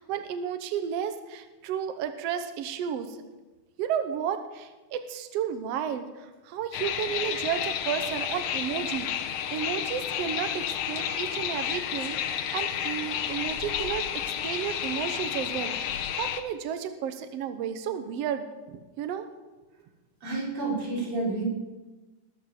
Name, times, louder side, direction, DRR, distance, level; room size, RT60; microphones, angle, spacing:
voice 1, 0.0-3.2 3.8-19.3, right 8 dB, 85° right, 8 dB, 1.4 m, -33 dB
sound 1, 6.7-16.4, left 9 dB, 70° left, 2.3 m, -31 dB
voice 2, 20.2-21.4, right 2 dB, 35° right, -4 dB, 5.3 m, -30 dB
20.0 x 7.2 x 7.5 m, 1.2 s
omnidirectional pair, 4.2 m